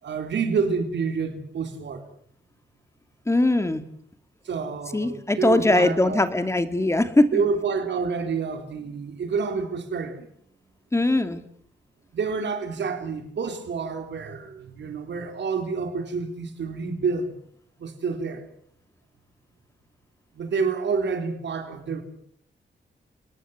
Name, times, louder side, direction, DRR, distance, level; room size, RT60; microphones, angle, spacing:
voice 1, 0.0-2.1 4.4-6.2 7.3-10.3 12.1-17.4 17.8-18.5 20.3-22.0, right 5 dB, 80° right, 3.9 m, -28 dB
voice 2, 3.3-3.8 4.9-7.4 10.9-11.4, left 2 dB, 15° left, 2.4 m, -21 dB
30.0 x 20.0 x 8.0 m
wide cardioid pair, 110°, 18 cm